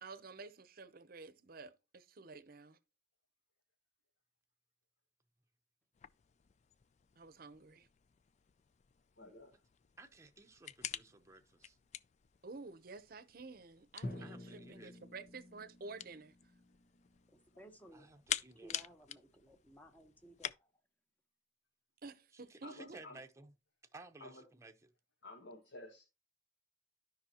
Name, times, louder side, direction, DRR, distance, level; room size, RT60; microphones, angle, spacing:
voice 1, 0.0-2.8 7.2-7.9 12.4-16.3 22.0-23.0, right 3 dB, 55° right, 0.7 m, -51 dB
sound 1, 5.9-20.5, left 10 dB, 40° left, 0.4 m, -48 dB
voice 2, 9.2-9.6 22.6-23.2 24.2-24.4 25.2-26.1, left 2 dB, 85° left, 1.8 m, -52 dB
voice 3, 10.0-11.8 14.2-14.9 17.9-18.7 22.5-23.5 23.9-24.7, right 2 dB, 15° right, 0.8 m, -56 dB
Drum, 14.0-17.8, left 1 dB, 55° left, 1.3 m, -50 dB
voice 4, 17.3-18.1 18.6-20.7, equal, 10° left, 1.1 m, -58 dB
13.0 x 5.4 x 2.9 m
head